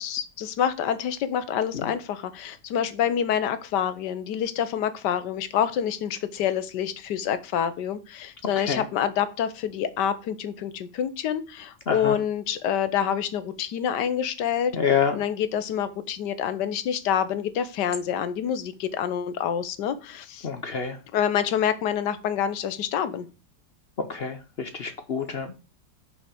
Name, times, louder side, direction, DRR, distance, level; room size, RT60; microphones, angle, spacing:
voice 1, 0.0-14.7 15.1-20.5 21.1-23.3, left 9 dB, 90° left, 13 dB, 1.4 m, -27 dB
voice 2, 11.9-12.2 14.7-15.2 20.4-21.0 24.0-25.5, left 6 dB, 50° left, 9 dB, 0.7 m, -27 dB
5.7 x 5.4 x 4.9 m, 0.32 s
omnidirectional pair, 1.8 m